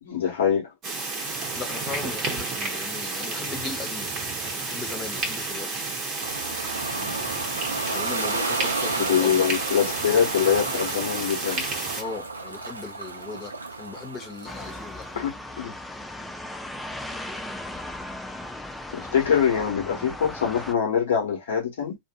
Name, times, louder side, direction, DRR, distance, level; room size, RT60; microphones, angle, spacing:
voice 1, 0.0-0.7 9.1-11.6 15.1-15.7 18.9-22.0, left 8 dB, 60° left, 1.2 m, -24 dB
sound 1, 0.8-12.0, right 3 dB, 30° right, 0.9 m, -31 dB
voice 2, 1.5-4.1 4.6-5.8 7.9-9.5 12.0-15.0, left 4 dB, 25° left, 0.8 m, -37 dB
Ocean, 6.2-15.1, right 3 dB, 80° right, 0.4 m, -32 dB
sound 2, 14.4-20.7, left 1 dB, 5° left, 0.4 m, -37 dB
2.6 x 2.5 x 2.3 m
figure-of-eight pair, 90°, 0 cm